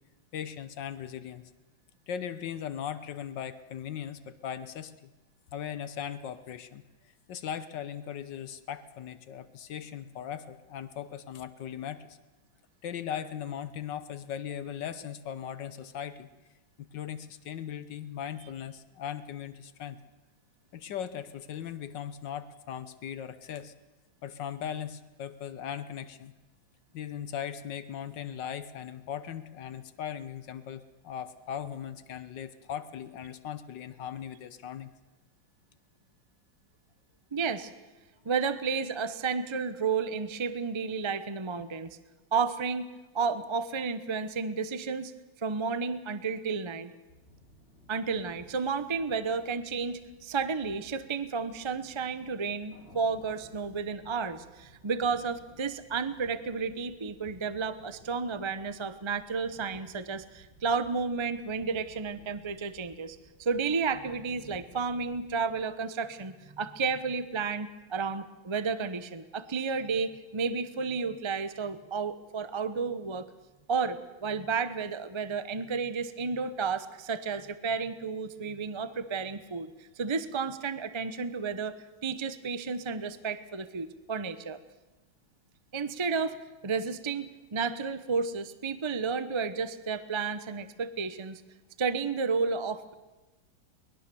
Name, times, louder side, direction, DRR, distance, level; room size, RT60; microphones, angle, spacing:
voice 1, 0.3-1.5 2.1-5.1 5.5-6.8 7.3-12.2 12.8-16.3 16.9-20.0 20.7-23.7 24.2-26.3 26.9-34.9, left 9 dB, 70° left, 13 dB, 1.5 m, -38 dB
voice 2, 37.3-37.7 38.2-42.0 42.3-42.9 43.1-45.1 45.4-46.9 47.9-73.3 73.7-79.7 80.0-81.7 82.0-84.6 85.7-86.4 86.6-91.4 91.8-92.9, right 5 dB, 30° right, 12 dB, 0.5 m, -32 dB
sound 1, 47.1-65.7, equal, 30° left, 3.1 m, -58 dB
23.5 x 20.5 x 7.0 m, 1.1 s
omnidirectional pair, 2.1 m